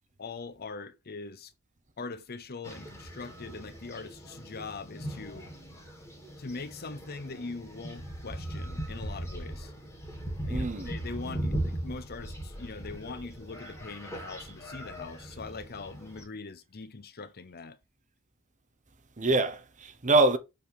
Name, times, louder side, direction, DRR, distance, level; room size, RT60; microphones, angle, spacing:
voice 1, 0.2-1.5 2.0-5.5 6.4-9.7 10.4-17.8, left 4 dB, 45° left, 0.8 m, -42 dB
sound 1, 2.6-16.2, right 1 dB, 15° left, 3.2 m, -39 dB
voice 2, 10.5-10.9 19.2-20.4, right 2 dB, 35° right, 1.0 m, -25 dB
6.8 x 5.1 x 3.5 m
head